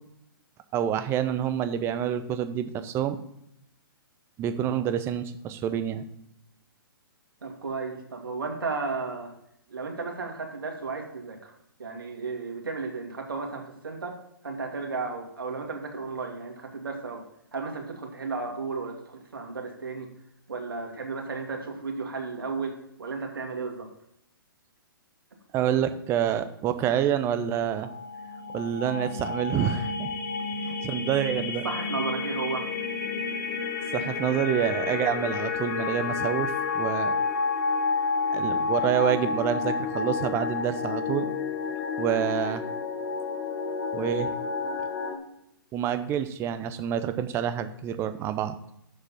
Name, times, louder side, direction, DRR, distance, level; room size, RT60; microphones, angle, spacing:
voice 1, 0.7-3.2 4.4-6.1 25.5-27.9 28.5-30.1 30.6-31.6 33.9-37.1 38.3-41.3 42.0-42.6 43.9-44.3 45.7-48.5, right 10 dB, 20° right, 11 dB, 0.6 m, -27 dB
voice 2, 7.4-9.3 9.7-11.5 11.8-17.2 17.5-20.1 20.5-23.9 31.4-32.6, right 4 dB, 70° right, 2 dB, 2.1 m, -34 dB
sound 1, 27.6-45.2, left 5 dB, 55° left, 1.6 m, -30 dB
7.1 x 6.5 x 5.7 m, 0.77 s
figure-of-eight pair, 125°, 12 cm